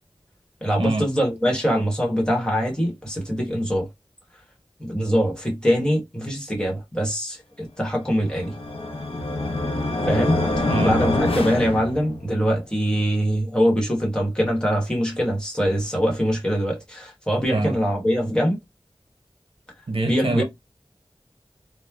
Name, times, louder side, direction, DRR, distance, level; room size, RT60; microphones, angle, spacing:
voice 1, 0.6-3.9 4.8-8.6 10.1-18.6 20.0-20.4, equal, 10° left, 1.2 m, -23 dB
sound 1, 8.2-12.5, left 2 dB, 85° left, 0.6 m, -25 dB
voice 2, 19.9-20.4, right 2 dB, 75° right, 0.7 m, -24 dB
3.0 x 2.0 x 2.3 m
wide cardioid pair, 55°, 9 cm